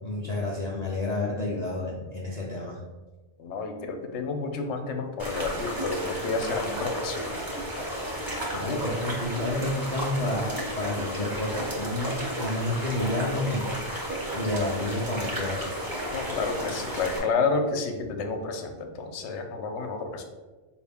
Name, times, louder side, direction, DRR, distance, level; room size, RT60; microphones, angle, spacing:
voice 1, 0.0-2.8 8.5-13.8 14.3-15.6, left 1 dB, 50° left, -3 dB, 0.5 m, -30 dB
voice 2, 3.4-7.4 16.1-20.2, left 4 dB, 80° left, 5 dB, 0.9 m, -30 dB
sound 1, 5.2-17.2, equal, 20° right, 0.9 m, -33 dB
4.8 x 2.5 x 3.4 m, 1.2 s
omnidirectional pair, 1.2 m